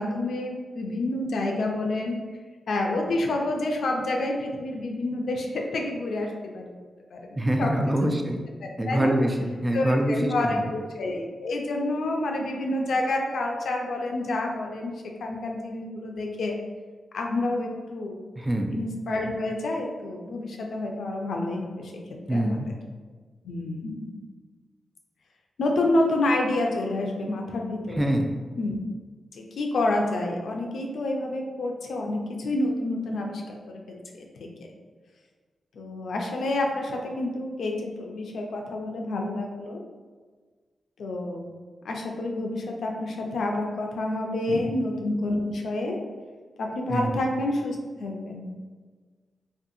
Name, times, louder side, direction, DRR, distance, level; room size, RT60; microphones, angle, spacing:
voice 1, 0.0-2.2 2.7-6.8 7.1-7.7 8.0-8.1 8.6-9.1 9.7-14.9 15.2-16.6 17.1-18.2 18.7-21.9 22.3-22.6 23.4-24.1 25.6-28.1 28.6-28.8 29.3-34.5 35.7-39.8 41.0-41.5 41.8-46.0 46.6-48.5, left 2 dB, 75° left, 1 dB, 0.3 m, -28 dB
voice 2, 7.4-8.4 8.8-10.7 18.4-18.7 22.3-22.7 28.0-28.3 44.5-44.7 46.9-47.1, right 1 dB, 20° right, 3 dB, 0.4 m, -25 dB
2.5 x 2.3 x 2.6 m, 1.5 s
supercardioid pair, 40°, 0 cm